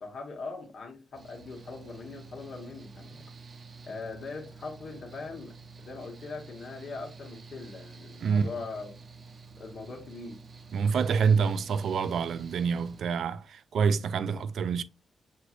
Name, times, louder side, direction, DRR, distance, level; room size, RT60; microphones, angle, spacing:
voice 1, 0.0-3.2 3.8-5.5 5.8-9.0 9.6-10.4, left 3 dB, 60° left, 1.1 m, -41 dB
Mechanical fan, 1.1-13.0, right 4 dB, 45° right, 0.7 m, -49 dB
voice 2, 8.2-8.5 10.7-14.8, right 6 dB, 70° right, 0.3 m, -27 dB
6.2 x 3.0 x 2.4 m
cardioid pair, 90°, 0 cm